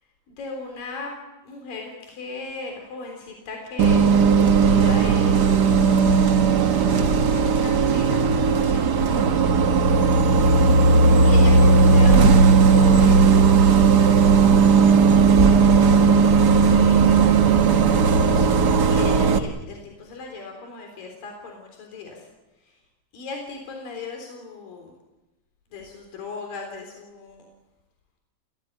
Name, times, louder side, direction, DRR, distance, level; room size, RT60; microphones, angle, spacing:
voice 1, 0.3-1.2 1.4-6.8 7.1-9.4 10.6-13.3 15.4-16.2 16.5-17.3 18.1-22.3 22.6-22.8 23.1-24.9 25.7-27.5, left 3 dB, 75° left, 2 dB, 5.3 m, -38 dB
Bus, 3.8-19.4, right 5 dB, 80° right, 0.9 m, -16 dB
29.5 x 17.5 x 9.3 m, 1.0 s
omnidirectional pair, 4.0 m